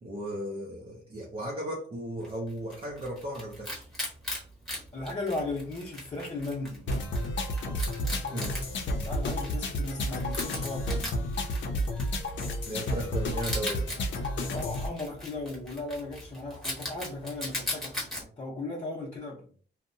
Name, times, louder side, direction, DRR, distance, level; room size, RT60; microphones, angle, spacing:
voice 1, 0.0-3.9 8.3-8.6 12.6-14.1, right 1 dB, 30° right, 0.5 m, -36 dB
Wild animals, 2.2-18.2, left 1 dB, ahead, 0.8 m, -40 dB
voice 2, 4.9-6.9 9.0-11.1 14.5-19.5, left 2 dB, 35° left, 0.7 m, -36 dB
sound 1, 6.9-14.9, left 1 dB, 85° left, 0.5 m, -31 dB
2.7 x 2.1 x 2.6 m
wide cardioid pair, 165°, 18 cm